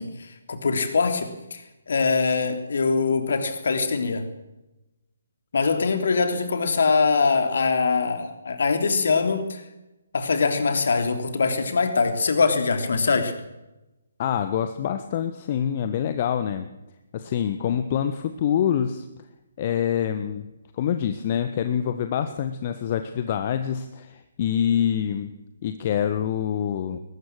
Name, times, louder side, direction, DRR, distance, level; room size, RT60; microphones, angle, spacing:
voice 1, 0.0-4.3 5.5-9.6 10.1-13.3, left 4 dB, 55° left, 8 dB, 3.3 m, -23 dB
voice 2, 14.2-16.7 17.1-19.0 19.6-20.5 20.7-25.3 25.6-27.0, left 9 dB, 35° left, 9 dB, 1.3 m, -26 dB
22.0 x 19.5 x 6.5 m, 0.99 s
figure-of-eight pair, 135°, 0 cm